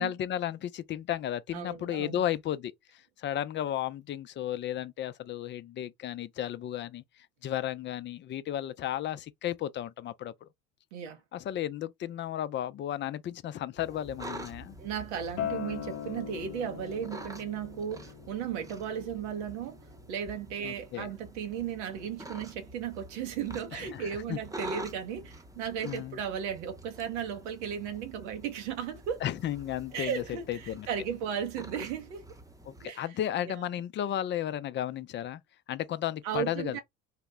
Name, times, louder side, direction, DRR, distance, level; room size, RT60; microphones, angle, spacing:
voice 1, 0.0-7.0 7.4-10.5 11.3-14.8 20.6-21.1 23.7-24.4 25.8-26.2 29.2-30.9 32.7-35.4 35.7-36.8, left 11 dB, 35° left, 0.4 m, -34 dB
voice 2, 1.5-2.2 10.9-11.2 14.8-19.8 20.1-29.2 29.9-32.2 32.8-33.1 33.4-33.6 36.2-36.8, right 8 dB, 80° right, 0.7 m, -35 dB
sound 1, 13.8-32.9, right 1 dB, 10° right, 0.7 m, -47 dB
Acoustic guitar, 15.4-20.6, left 10 dB, 85° left, 0.6 m, -41 dB
2.8 x 2.1 x 3.4 m
hypercardioid pair, 70°, 35 cm